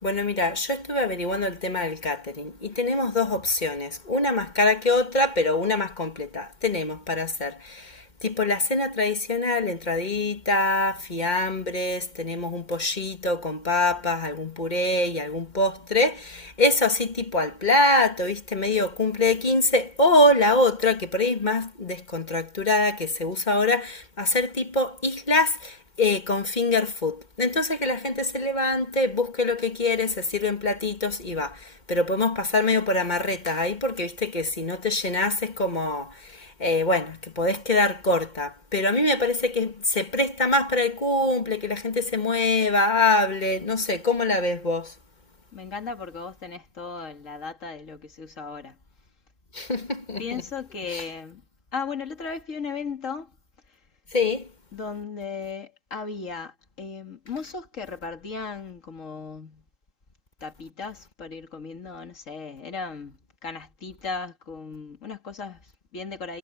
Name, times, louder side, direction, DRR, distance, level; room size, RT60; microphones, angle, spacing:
voice 1, 0.0-44.9 49.5-50.4 50.9-51.0 54.1-54.5, left 2 dB, 35° left, 1.9 m, -24 dB
voice 2, 45.5-48.8 50.2-51.4 51.7-53.3 54.7-59.6 60.4-66.4, left 5 dB, 90° left, 2.4 m, -36 dB
omnidirectional pair, 1.3 m